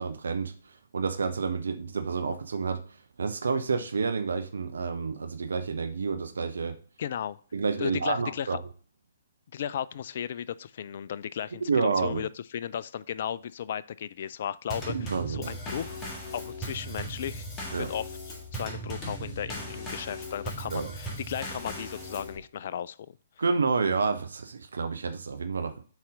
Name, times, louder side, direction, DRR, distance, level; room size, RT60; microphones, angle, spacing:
voice 1, 0.0-2.8 3.2-6.8 7.5-8.6 11.7-12.3 14.9-15.5 17.7-17.9 20.7-20.9 23.4-25.9, right 4 dB, 65° right, 9 dB, 0.7 m, -29 dB
voice 2, 7.0-7.4 7.8-8.6 9.5-16.0 16.3-18.2 18.5-23.2, left 9 dB, 45° left, 18 dB, 0.3 m, -35 dB
Drum kit / Snare drum / Bass drum, 14.7-22.4, equal, 15° left, 1.8 m, -38 dB
7.5 x 4.2 x 3.6 m, 0.41 s
figure-of-eight pair, 125°, 0 cm